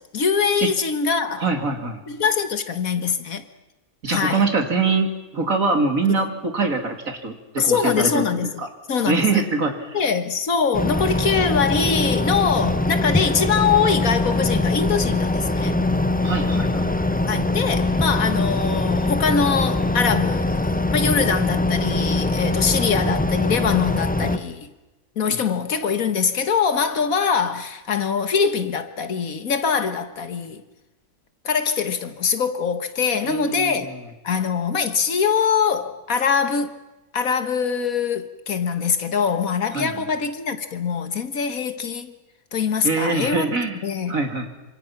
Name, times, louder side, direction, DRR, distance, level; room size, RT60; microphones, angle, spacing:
voice 1, 0.0-1.5 2.1-3.4 4.1-4.4 6.1-6.3 7.6-8.6 8.9-9.4 9.9-15.8 17.3-24.7 25.2-30.6 31.5-33.9 34.2-36.8 37.1-42.1 42.5-43.5 43.8-44.2, left 6 dB, 65° left, 1.8 m, -23 dB
voice 2, 1.4-2.0 4.0-7.3 7.6-8.2 8.6-8.7 9.1-10.0 16.2-16.9 25.3-25.4 33.2-33.9 39.7-40.0 42.8-43.8 44.1-44.5, right 3 dB, 65° right, 3.2 m, -23 dB
Computer Fan Loop, 10.7-24.4, left 2 dB, 10° left, 0.6 m, -22 dB
27.5 x 25.5 x 5.9 m
omnidirectional pair, 1.6 m